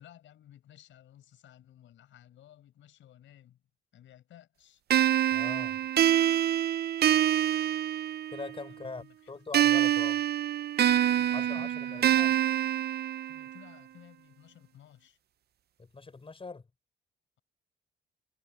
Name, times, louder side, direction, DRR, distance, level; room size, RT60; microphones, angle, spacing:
voice 1, 0.0-3.6 3.9-4.8 8.7-9.3 11.1-12.2 13.3-15.2, left 11 dB, 75° left, 5.3 m, -56 dB
sound 1, 4.9-8.5 9.5-13.6, right 11 dB, 55° right, 0.6 m, -26 dB
voice 2, 5.3-5.8 8.3-10.2 11.3-12.3 15.8-16.6, left 4 dB, 25° left, 5.4 m, -42 dB
cardioid pair, 90°, 20 cm